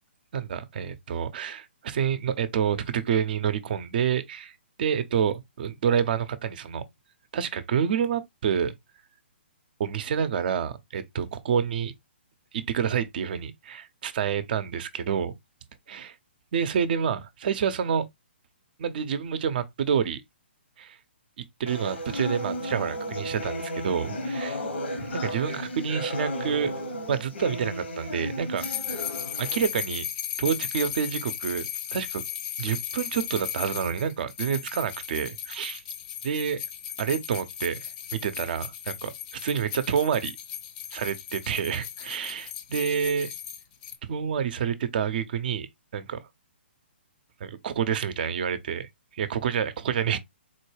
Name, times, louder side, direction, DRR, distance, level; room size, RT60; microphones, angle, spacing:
voice 1, 0.3-4.5 4.8-6.8 7.3-8.8 9.8-11.9 12.5-15.3 15.9-16.1 16.5-18.1 18.8-20.2 20.8-21.0 21.6-24.6 25.0-26.7 27.1-28.6 29.4-30.1 30.4-32.2 32.6-35.8 36.2-36.6 37.0-37.8 38.1-40.4 40.9-43.3 44.1-45.7 45.9-46.2 47.4-48.9 49.2-50.2, right 7 dB, 50° right, 0.6 m, -28 dB
sound 1, 21.7-29.6, equal, 75° left, 1.1 m, -34 dB
sound 2, 28.6-44.0, left 10 dB, 35° left, 0.6 m, -36 dB
4.0 x 2.2 x 3.2 m
hypercardioid pair, 140°, 6 cm